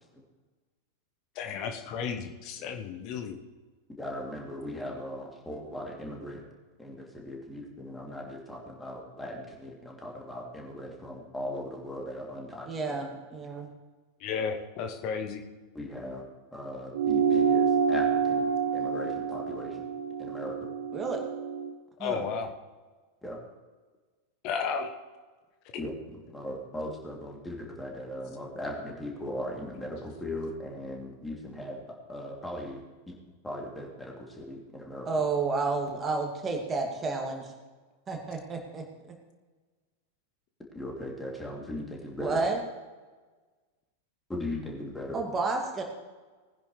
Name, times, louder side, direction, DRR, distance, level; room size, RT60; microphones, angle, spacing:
voice 1, 1.3-3.4 14.2-15.4 22.0-22.5 24.4-24.9, left 6 dB, 40° left, 5 dB, 1.2 m, -33 dB
voice 2, 4.0-6.4 6.8-13.1 15.7-16.3 16.5-19.9 20.2-20.6 23.2-23.4 25.8-31.8 32.1-33.1 33.4-35.1 40.7-42.4 44.3-45.2, left 1 dB, 10° left, -1 dB, 2.9 m, -38 dB
voice 3, 12.7-13.7 20.9-21.2 22.0-22.2 35.1-37.5 38.1-38.8 42.2-42.6 45.1-45.8, right 4 dB, 20° right, 2 dB, 2.4 m, -30 dB
sound 1, 16.9-21.7, right 6 dB, 60° right, 0.5 m, -27 dB
19.5 x 10.0 x 3.3 m, 1.3 s
figure-of-eight pair, 90°, 0 cm